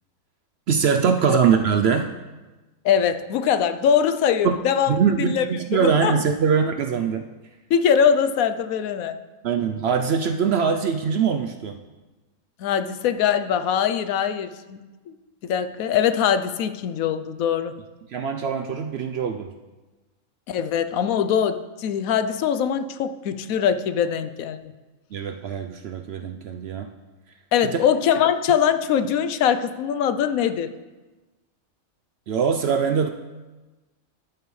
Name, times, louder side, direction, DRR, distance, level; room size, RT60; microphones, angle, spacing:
voice 1, 0.7-2.1 4.4-4.6 4.9-7.3 9.4-11.8 18.1-19.5 25.1-26.9 27.6-27.8 32.3-33.1, right 6 dB, 65° right, 6 dB, 0.6 m, -22 dB
voice 2, 2.8-5.4 5.8-6.2 7.7-9.2 12.6-14.8 15.1-15.2 15.4-17.7 20.5-24.7 27.5-30.7, left 8 dB, 80° left, 10 dB, 1.0 m, -22 dB
11.5 x 8.9 x 3.2 m, 1.2 s
omnidirectional pair, 1.5 m